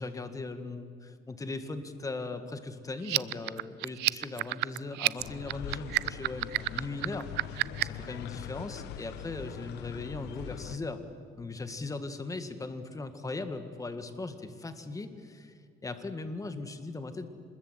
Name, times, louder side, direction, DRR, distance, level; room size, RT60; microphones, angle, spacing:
voice 1, 0.0-7.3 7.8-11.0 11.4-15.5 15.8-17.3, left 3 dB, 20° left, 9 dB, 1.9 m, -38 dB
sound 1, 3.0-8.0, right 20 dB, 90° right, 0.5 m, -30 dB
sound 2, 5.2-10.8, left 9 dB, 85° left, 1.2 m, -42 dB
26.5 x 21.0 x 8.2 m, 2.3 s
cardioid pair, 110°, 17 cm